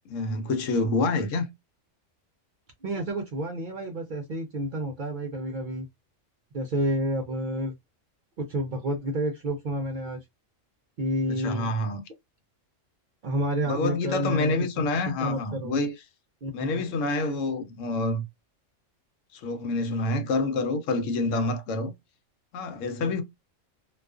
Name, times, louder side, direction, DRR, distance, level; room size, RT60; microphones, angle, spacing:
voice 1, 0.1-1.5 11.3-12.0 13.7-15.9 16.5-18.2 19.3-21.9 22.5-23.2, left 2 dB, 90° left, 1.0 m, -27 dB
voice 2, 2.8-5.9 6.5-7.7 8.4-10.2 11.0-11.7 13.2-15.8 16.4-16.8 23.0-23.2, right 1 dB, 60° right, 0.5 m, -30 dB
2.3 x 2.3 x 2.3 m
omnidirectional pair, 1.3 m